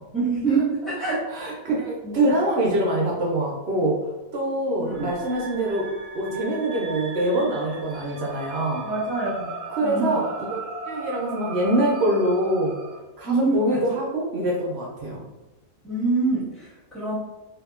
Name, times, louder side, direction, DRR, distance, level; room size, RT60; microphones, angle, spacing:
voice 1, 0.1-1.2 2.0-2.3 4.7-5.1 8.8-9.5 9.8-10.2 13.2-13.8 15.8-17.2, right 3 dB, ahead, -10 dB, 1.0 m, -25 dB
voice 2, 1.0-4.0 4.3-8.9 9.8-12.8 13.2-15.2, right 1 dB, 65° right, -3 dB, 0.7 m, -24 dB
sound 1, 4.8-13.0, right 3 dB, 85° right, 1.0 m, -37 dB
2.8 x 2.6 x 2.3 m, 1.1 s
omnidirectional pair, 1.4 m